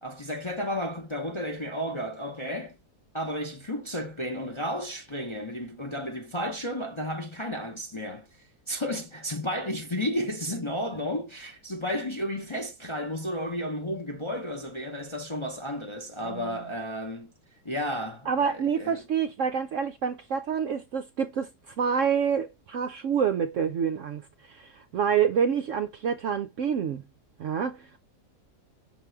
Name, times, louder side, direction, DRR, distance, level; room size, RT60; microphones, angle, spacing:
voice 1, 0.0-2.7 3.1-8.3 8.7-17.3 17.6-19.0, equal, 25° left, 0.7 m, -32 dB
voice 2, 16.2-16.6 18.3-27.0 27.4-28.0, right 7 dB, 70° right, 0.7 m, -27 dB
6.1 x 3.7 x 4.5 m
omnidirectional pair, 1.7 m